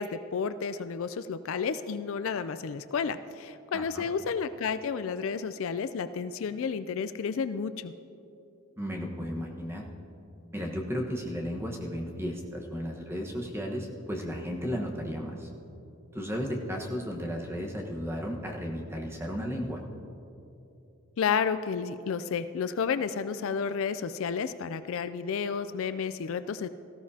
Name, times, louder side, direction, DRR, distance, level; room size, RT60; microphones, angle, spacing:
voice 1, 0.0-7.9 21.2-26.7, left 6 dB, 65° left, 12 dB, 0.4 m, -31 dB
voice 2, 3.7-4.1 8.8-9.8 10.5-15.5 16.1-19.8, equal, 10° right, 0 dB, 1.2 m, -34 dB
18.0 x 14.5 x 2.8 m, 2.8 s
head